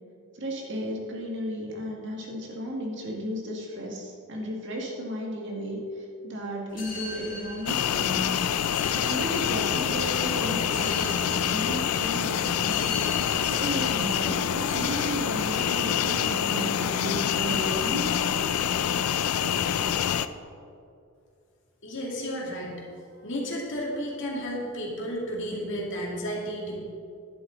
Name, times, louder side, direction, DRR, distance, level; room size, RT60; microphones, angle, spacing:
voice 1, 0.3-8.3 8.9-18.1, equal, 55° right, -1 dB, 1.9 m, -34 dB
sound 1, 6.7-20.2, left 2 dB, 35° left, 2.0 m, -42 dB
sound 2, 7.7-20.3, left 9 dB, 80° left, 0.4 m, -26 dB
voice 2, 21.8-22.8 23.2-26.8, equal, 55° left, -3 dB, 2.4 m, -32 dB
11.5 x 11.0 x 3.9 m, 2.4 s
head